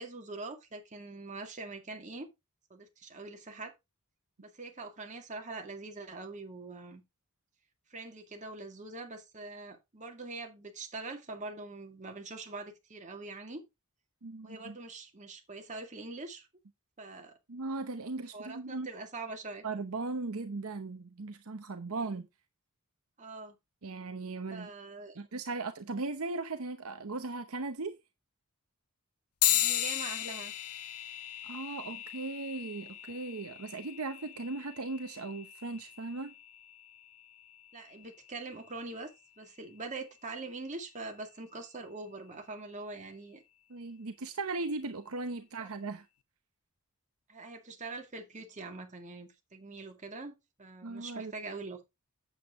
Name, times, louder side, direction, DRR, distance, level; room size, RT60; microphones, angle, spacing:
voice 1, 0.0-2.3 2.7-3.7 4.4-7.0 7.9-13.6 14.4-16.5 17.0-17.4 18.3-19.6 23.2-23.6 24.5-25.2 29.5-30.5 37.7-39.1 39.4-43.4 45.6-45.7 47.3-51.8, right 3 dB, 35° right, 2.1 m, -43 dB
voice 2, 14.2-14.8 17.5-18.9 19.6-22.3 23.8-24.7 25.1-28.0 31.4-36.3 43.7-46.1 50.8-51.3, right 3 dB, 70° right, 0.9 m, -38 dB
sound 1, 29.4-39.2, left 14 dB, 80° left, 0.9 m, -36 dB
8.3 x 7.9 x 3.6 m
head